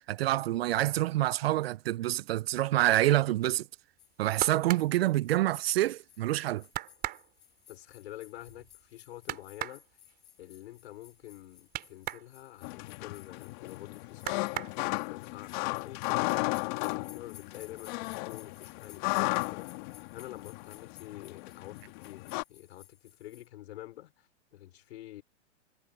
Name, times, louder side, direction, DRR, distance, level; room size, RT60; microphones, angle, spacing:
voice 1, 0.1-3.6 4.2-6.6, right 15 dB, 55° right, 0.5 m, -27 dB
sound 1, 4.0-23.5, left 11 dB, 80° left, 7.9 m, -58 dB
sound 2, 4.0-5.9 6.3-6.4 6.7-12.3 12.6-13.8 14.1-15.2 15.7-16.3 16.6-17.3 17.6-17.7, right 14 dB, 25° right, 3.6 m, -40 dB
voice 2, 7.7-9.9 10.4-14.6 15.1-19.8 20.1-25.2, left 14 dB, 60° left, 4.5 m, -48 dB
sound 3, 12.6-22.4, left 26 dB, 40° left, 2.5 m, -35 dB
hypercardioid pair, 140°, 36 cm